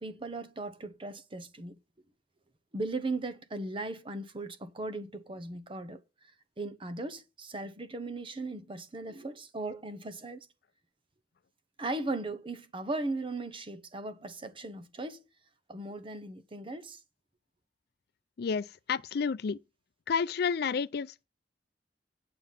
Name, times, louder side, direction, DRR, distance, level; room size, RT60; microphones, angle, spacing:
voice 1, 0.0-1.8 2.7-6.0 6.6-10.5 11.8-15.3 15.7-17.0, right 2 dB, 30° right, 1.0 m, -37 dB
voice 2, 18.4-19.6 20.1-21.2, left 6 dB, 60° left, 0.4 m, -30 dB
9.3 x 6.9 x 5.8 m
head